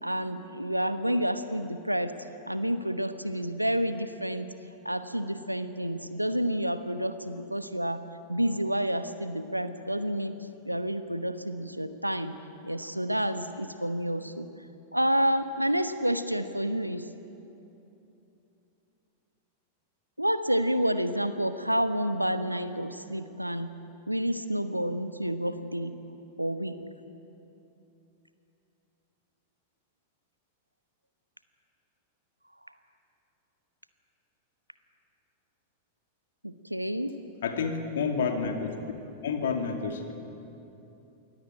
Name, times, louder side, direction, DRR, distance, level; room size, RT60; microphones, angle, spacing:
voice 1, 0.0-2.1 2.5-4.5 4.8-8.0 8.3-12.3 12.6-14.5 14.9-17.1 20.2-23.7 24.1-25.9 26.4-26.8 36.4-37.1, equal, 90° right, 11 dB, 1.1 m, -29 dB
voice 2, 37.4-38.7 39.2-40.1, left 5 dB, 60° left, 5 dB, 2.4 m, -29 dB
23.0 x 17.5 x 8.7 m, 2.9 s
figure-of-eight pair, 90°, 0 cm